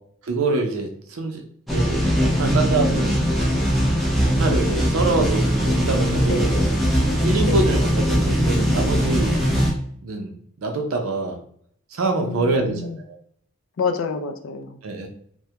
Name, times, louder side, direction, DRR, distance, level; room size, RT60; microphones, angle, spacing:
voice 1, 0.2-1.4 1.7-3.2 4.2-6.5 7.2-9.4 10.0-11.4 11.9-12.7 13.1-13.2 14.8-15.1, right 3 dB, 85° right, 3 dB, 0.5 m, -25 dB
sound 1, 1.7-9.7, equal, ahead, 0.4 m, -20 dB
voice 2, 6.3-6.7 7.4-7.7 12.2-13.0 13.8-14.8, left 5 dB, 65° left, 6 dB, 0.3 m, -28 dB
2.2 x 2.1 x 2.7 m, 0.64 s
head